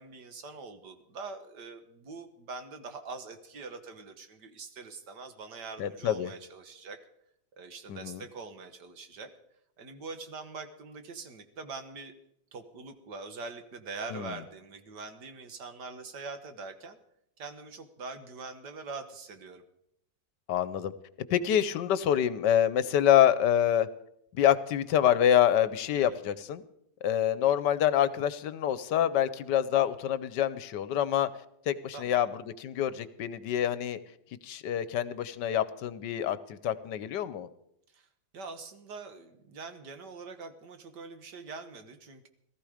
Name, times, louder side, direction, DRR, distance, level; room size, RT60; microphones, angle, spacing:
voice 1, 0.0-7.0 7.6-9.3 9.8-12.1 12.5-17.0 17.4-19.6 25.9-26.2 31.9-32.3 37.9-38.1 38.3-42.3, right 4 dB, 70° right, 8 dB, 1.9 m, -43 dB
voice 2, 5.8-6.3 7.9-8.2 14.1-14.3 20.5-20.9 21.3-23.9 24.3-26.6 27.0-31.3 31.7-34.0 34.4-37.5, left 10 dB, 75° left, 15 dB, 1.4 m, -26 dB
18.5 x 13.5 x 5.0 m, 0.74 s
omnidirectional pair, 1.9 m